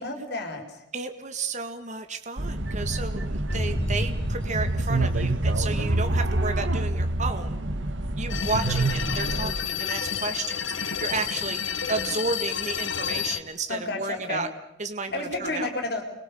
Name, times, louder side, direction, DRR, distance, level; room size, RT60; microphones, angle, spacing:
voice 1, 0.0-0.8 11.5-11.6 13.7-14.5 15.0-16.0, left 2 dB, 60° left, 4 dB, 4.7 m, -31 dB
voice 2, 0.9-7.6 8.2-11.6 11.9-14.5 14.8-15.7, right 4 dB, 40° right, 7 dB, 1.7 m, -32 dB
sound 1, 2.4-9.5, right 1 dB, 90° right, 1.7 m, -27 dB
sound 2, 3.5-6.2, equal, 30° left, 4.5 m, -32 dB
sound 3, 8.3-13.4, left 8 dB, 85° left, 1.8 m, -30 dB
30.0 x 22.0 x 7.0 m, 0.79 s
head